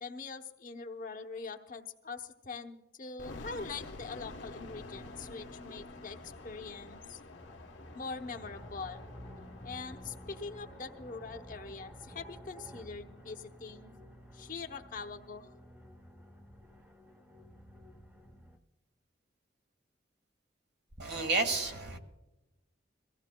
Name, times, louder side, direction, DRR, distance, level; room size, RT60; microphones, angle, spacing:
voice 1, 0.0-7.2 7.9-9.0 9.6-13.9 14.3-15.5, left 4 dB, 45° left, 6 dB, 0.8 m, -43 dB
sound 1, 3.2-14.1, left 3 dB, 80° left, 1.1 m, -50 dB
sound 2, 3.9-18.6, equal, 15° right, 1.1 m, -52 dB
voice 2, 21.0-22.0, right 3 dB, 60° right, 5 dB, 1.6 m, -31 dB
23.5 x 16.0 x 2.2 m, 1.0 s
head